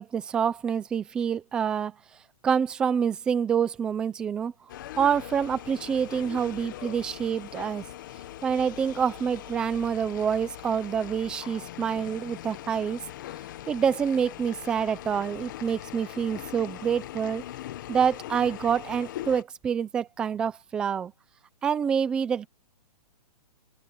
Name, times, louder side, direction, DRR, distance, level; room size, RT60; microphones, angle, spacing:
voice 1, 0.0-1.9 2.4-4.5 5.0-7.9 8.4-13.0 13.7-17.4 17.9-21.1 21.6-22.5, right 7 dB, 5° right, 0.5 m, -27 dB
sound 1, 4.7-19.4, left 14 dB, 30° left, 1.3 m, -41 dB
open air
hypercardioid pair, 175°, 20 cm